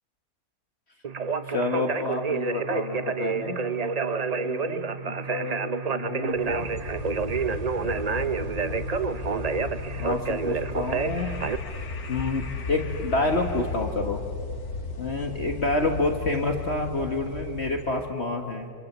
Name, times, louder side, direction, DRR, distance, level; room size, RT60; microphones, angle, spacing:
Conversation, 1.0-11.6, right 5 dB, 40° right, 0.6 m, -29 dB
voice 1, 1.5-3.6 4.4-5.6 5.9-6.7 7.7-8.8 10.0-11.4 12.1-14.2 15.0-18.7, left 2 dB, 40° left, 4 dB, 1.8 m, -29 dB
sound 1, 6.3-18.2, left 3 dB, 65° left, 2.1 m, -36 dB
28.5 x 26.5 x 7.4 m, 2.2 s
omnidirectional pair, 1.7 m